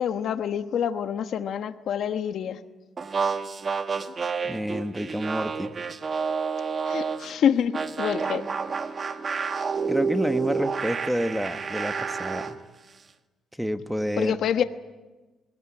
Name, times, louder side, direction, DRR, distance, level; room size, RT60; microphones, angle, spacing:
voice 1, 0.0-2.6 6.9-8.4 14.2-14.6, left 8 dB, 70° left, 9 dB, 1.1 m, -26 dB
sound 1, 3.0-7.3 7.7-12.6, right 5 dB, 40° right, 1.5 m, -29 dB
voice 2, 4.4-5.7 9.9-12.6 13.6-14.4, equal, ahead, 9 dB, 1.3 m, -29 dB
21.5 x 19.0 x 9.9 m, 1.2 s
cardioid pair, 90°, 0 cm